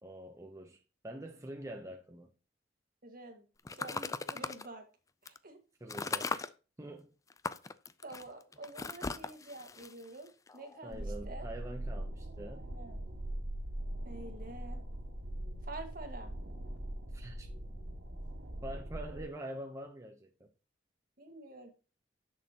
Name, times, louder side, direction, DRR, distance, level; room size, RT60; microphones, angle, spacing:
voice 1, 0.0-2.3 5.8-6.5 6.8-7.1 10.8-12.7 17.1-17.5 18.6-20.5, right 1 dB, 15° right, 0.7 m, -45 dB
voice 2, 3.0-4.8 5.2-5.6 6.1-6.2 8.0-11.5 12.6-13.0 14.0-14.8 15.6-16.3 19.1-19.3 21.2-21.7, right 2 dB, 50° right, 1.8 m, -48 dB
sound 1, 3.7-4.7 5.3-5.4 5.9-6.5 7.3-10.8, left 4 dB, 20° left, 0.4 m, -38 dB
sound 2, 10.9-19.2, right 1 dB, 85° right, 1.8 m, -41 dB
10.5 x 6.4 x 2.9 m
head